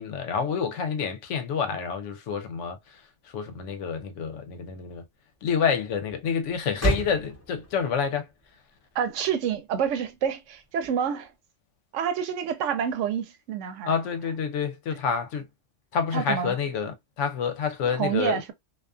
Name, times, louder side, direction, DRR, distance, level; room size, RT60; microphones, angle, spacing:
voice 1, 0.0-5.0 5.4-8.3 13.8-15.5 15.9-18.4, left 6 dB, 80° left, 0.9 m, -28 dB
Motor vehicle (road), 2.8-11.3, right 2 dB, 15° left, 0.8 m, -37 dB
voice 2, 8.9-11.3 11.9-13.9 16.1-16.6 17.8-18.5, right 8 dB, 80° right, 0.9 m, -28 dB
2.4 x 2.3 x 2.3 m
omnidirectional pair, 1.3 m